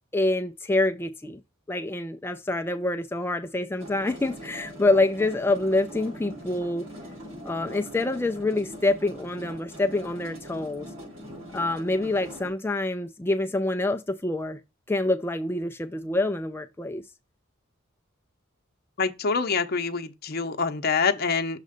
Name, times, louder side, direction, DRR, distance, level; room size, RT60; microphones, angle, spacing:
voice 1, 0.1-1.4 1.7-6.8 7.4-10.9 11.5-14.6 14.9-17.0, left 2 dB, 10° left, 0.4 m, -26 dB
sound 1, 3.8-12.5, equal, 80° right, 4.6 m, -42 dB
voice 2, 19.0-21.6, left 5 dB, 50° left, 0.8 m, -26 dB
6.6 x 3.1 x 5.1 m
head